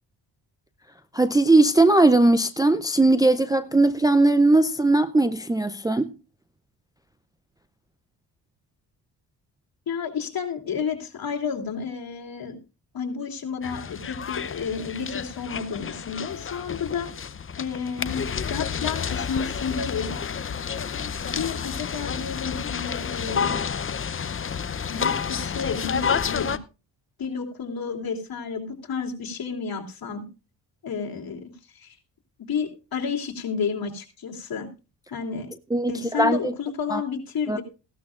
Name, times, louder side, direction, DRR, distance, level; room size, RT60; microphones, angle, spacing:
voice 1, 1.1-6.1 35.7-36.5 36.9-37.0 37.5-37.6, right 2 dB, 10° right, 0.5 m, -19 dB
voice 2, 9.9-12.6 12.9-17.1 17.6-20.1 21.2-23.6 23.9-24.0 24.9-26.6 27.2-30.3 30.8-31.4 31.7-31.9 32.5-34.7 35.1-35.5 35.9-37.6, left 6 dB, 55° left, 3.0 m, -31 dB
sound 1, 13.6-26.6, left 6 dB, 30° left, 0.7 m, -30 dB
16.5 x 12.5 x 2.5 m
cardioid pair, 80°, 43 cm